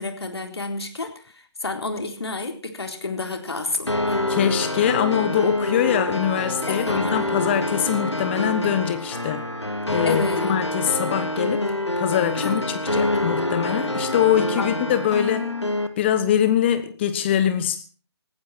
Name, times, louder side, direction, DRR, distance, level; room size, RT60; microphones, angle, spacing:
voice 1, 0.0-4.2 6.7-7.1 10.0-10.6 12.4-12.6 14.6-15.1, left 3 dB, 70° left, 5 dB, 4.0 m, -30 dB
sound 1, 3.9-15.9, left 1 dB, 90° left, 2.4 m, -26 dB
voice 2, 4.3-9.5 9.9-10.2 10.5-11.6 12.0-15.5 16.0-17.8, left 10 dB, 25° left, 11 dB, 1.2 m, -23 dB
19.5 x 14.5 x 4.5 m, 0.38 s
figure-of-eight pair, 145°, 14 cm